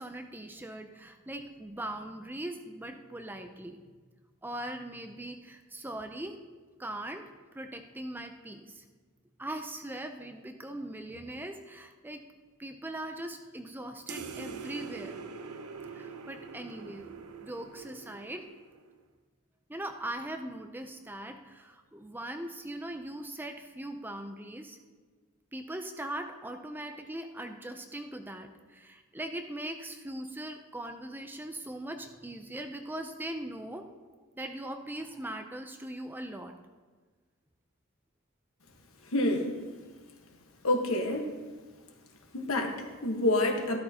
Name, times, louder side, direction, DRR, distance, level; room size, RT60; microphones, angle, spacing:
voice 1, 0.0-3.8 4.4-6.4 6.8-7.2 7.5-8.9 9.4-12.3 12.6-15.2 15.9-17.1 17.4-18.5 19.7-24.8 25.5-33.9 34.3-36.5, right 1 dB, 10° right, 5 dB, 0.5 m, -40 dB
sound 1, 14.1-19.0, right 5 dB, 90° right, 0.8 m, -44 dB
voice 2, 39.1-39.6 40.6-41.3 42.3-43.8, left 1 dB, 70° left, 3 dB, 1.4 m, -28 dB
13.0 x 13.0 x 2.9 m, 1.4 s
head